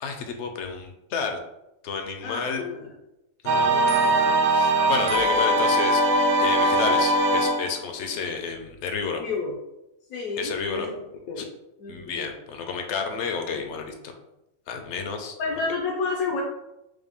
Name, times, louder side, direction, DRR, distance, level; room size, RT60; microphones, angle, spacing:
voice 1, 0.0-1.4 1.8-2.6 3.4-6.0 6.4-9.2 10.4-10.9 11.4-11.5 11.9-14.1 14.7-15.3, left 5 dB, 65° left, 5 dB, 0.7 m, -31 dB
voice 2, 2.2-2.9 9.2-9.6 10.1-11.0 11.3-11.4 11.8-12.3 15.4-16.4, left 4 dB, 85° left, -1 dB, 1.1 m, -30 dB
sound 1, 3.5-7.7, right 1 dB, 85° right, 1.0 m, -21 dB
4.8 x 2.2 x 3.4 m, 0.89 s
omnidirectional pair, 1.5 m